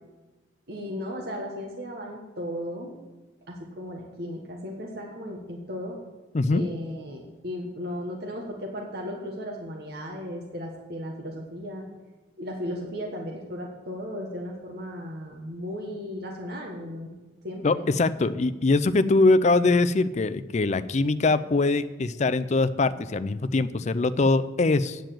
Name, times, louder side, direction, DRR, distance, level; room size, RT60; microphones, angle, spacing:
voice 1, 0.7-2.9 3.5-6.0 6.5-11.9 12.4-17.1 17.4-17.9, equal, 60° right, 0 dB, 1.4 m, -35 dB
voice 2, 17.6-25.0, left 3 dB, 40° left, 14 dB, 0.4 m, -22 dB
9.1 x 6.8 x 7.6 m, 1.2 s
head